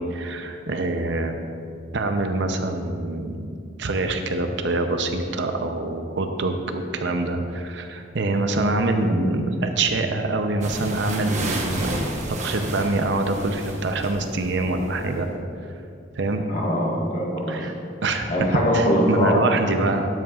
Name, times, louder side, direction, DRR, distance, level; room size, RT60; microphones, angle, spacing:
voice 1, 0.0-1.5 1.9-3.4 3.8-11.9 12.4-15.3 16.2-16.4 17.5-17.7 18.0-18.3 18.7-20.1, right 2 dB, 60° right, 6 dB, 0.6 m, -25 dB
sound 1, 10.6-15.2, right 2 dB, 40° right, 1.0 m, -31 dB
voice 2, 16.5-17.7 18.3-19.4, equal, 40° left, -4 dB, 1.6 m, -22 dB
12.5 x 7.7 x 2.4 m, 2.4 s
head